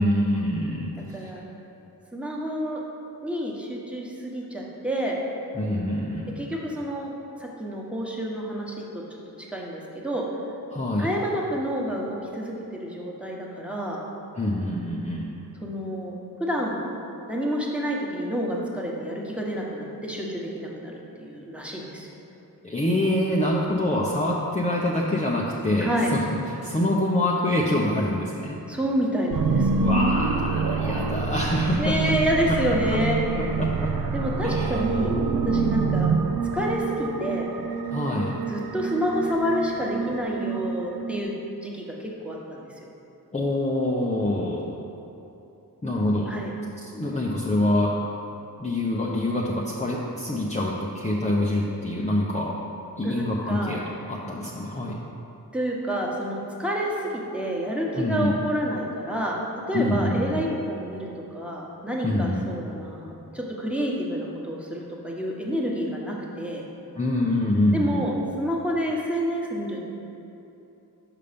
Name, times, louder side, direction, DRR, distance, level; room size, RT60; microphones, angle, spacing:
voice 1, 0.0-1.3 5.5-6.4 10.7-11.1 14.4-15.3 22.6-26.2 26.5-28.6 29.8-32.0 32.5-32.8 33.3-33.9 34.4-34.8 37.9-38.3 43.3-44.6 45.8-46.3 46.8-48.0 48.6-52.6 53.0-55.0 57.9-58.3 59.7-60.4 62.0-62.5 67.0-68.1, left 1 dB, 20° left, -3 dB, 0.7 m, -25 dB
voice 2, 2.1-2.8 3.2-5.2 6.4-7.1 7.4-9.0 9.5-10.2 11.0-14.0 15.6-16.8 17.3-20.9 21.2-22.1 25.8-26.1 28.7-29.9 31.8-33.6 34.1-35.1 35.4-36.1 36.5-37.5 38.5-41.3 41.6-42.9 46.3-46.5 53.0-53.8 55.5-59.4 59.7-61.1 61.3-66.7 67.7-69.9, equal, 5° right, -3 dB, 1.3 m, -28 dB
sound 1, 29.3-41.2, right 4 dB, 60° right, 0.6 m, -26 dB
5.6 x 5.2 x 5.2 m, 2.9 s
cardioid pair, 45°, 38 cm